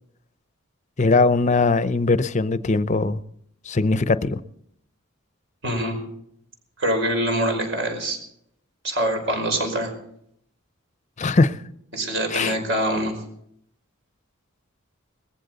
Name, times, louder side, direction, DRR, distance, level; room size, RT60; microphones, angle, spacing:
voice 1, 1.0-3.2 3.7-4.4 11.2-11.6 12.3-12.6, left 3 dB, 35° left, 0.6 m, -20 dB
voice 2, 5.6-6.0 6.8-8.2 8.8-9.9 11.9-13.1, right 1 dB, 65° right, 5.1 m, -24 dB
20.0 x 15.0 x 4.0 m
head